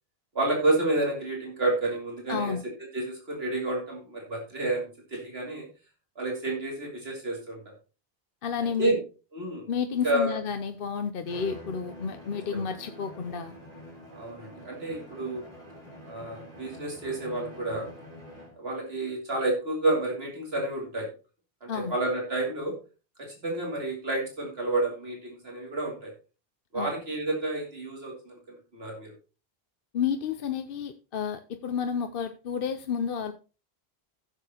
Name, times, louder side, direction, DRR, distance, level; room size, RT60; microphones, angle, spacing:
voice 1, 0.3-2.5 2.9-5.7 6.2-7.6 8.8-9.0 9.3-9.7 10.0-10.4 12.5-12.6 14.1-15.4 16.1-17.9 18.6-21.1 21.6-22.7 23.2-26.1 26.7-29.1, right 2 dB, 75° right, 2.8 m, -30 dB
voice 2, 2.3-2.6 8.4-9.0 9.7-13.6 21.7-21.9 26.7-26.9 29.9-33.3, left 7 dB, 60° left, 0.9 m, -31 dB
Bowed string instrument, 11.2-18.7, equal, 50° right, 3.4 m, -46 dB
16.0 x 6.8 x 2.9 m
omnidirectional pair, 1.1 m